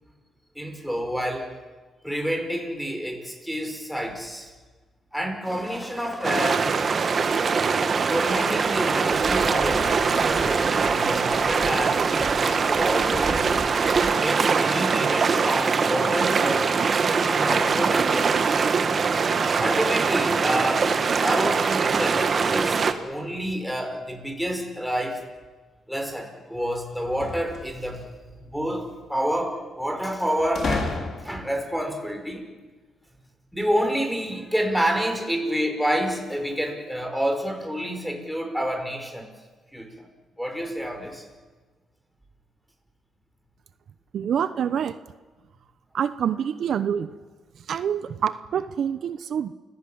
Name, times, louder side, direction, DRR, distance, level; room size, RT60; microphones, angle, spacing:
voice 1, 0.6-1.5 2.0-4.5 5.1-6.7 8.1-13.5 14.2-16.9 17.3-18.9 19.6-20.9 21.2-25.2 25.9-28.0 28.3-31.0 31.2-32.5 33.5-39.3 39.7-40.0 40.4-41.2, equal, ahead, 4 dB, 5.5 m, -28 dB
sound 1, 5.4-14.4, right 2 dB, 15° right, 2.9 m, -37 dB
sound 2, 6.2-22.9, right 5 dB, 45° right, 1.9 m, -22 dB
sound 3, 27.0-28.1 30.6-31.6, left 4 dB, 55° left, 3.8 m, -31 dB
voice 2, 44.1-45.0 45.9-47.1 47.7-49.5, right 8 dB, 60° right, 12 dB, 0.9 m, -26 dB
29.5 x 17.0 x 8.8 m, 1.3 s
cardioid pair, 90°, 0 cm